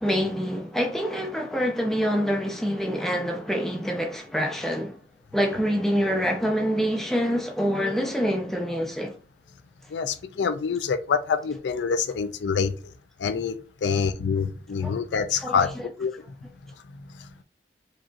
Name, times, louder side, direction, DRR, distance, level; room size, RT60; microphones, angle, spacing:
voice 1, 0.0-5.0 5.3-9.1 14.8-14.9 15.3-15.6, equal, ahead, 0.6 m, -26 dB
voice 2, 9.9-12.7 13.2-13.5 13.8-16.1, left 6 dB, 80° left, 0.4 m, -26 dB
4.7 x 2.8 x 2.4 m
head